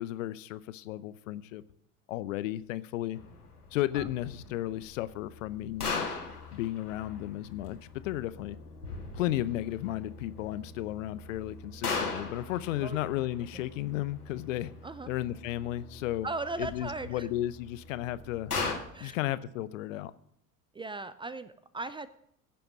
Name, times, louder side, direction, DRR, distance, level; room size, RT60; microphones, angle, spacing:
voice 1, 0.0-1.6 2.1-3.2 3.7-6.1 6.5-8.6 9.1-14.7 15.1-16.3 16.6-18.5 19.0-20.1, left 14 dB, 60° left, 16 dB, 0.8 m, -34 dB
sound 1, 3.1-18.7, left 4 dB, 85° left, 2.1 m, -40 dB
voice 2, 16.2-17.3 18.9-19.2 20.7-22.1, right 3 dB, 10° right, 15 dB, 0.5 m, -38 dB
16.0 x 6.9 x 6.2 m, 0.72 s
figure-of-eight pair, 70°, 45 cm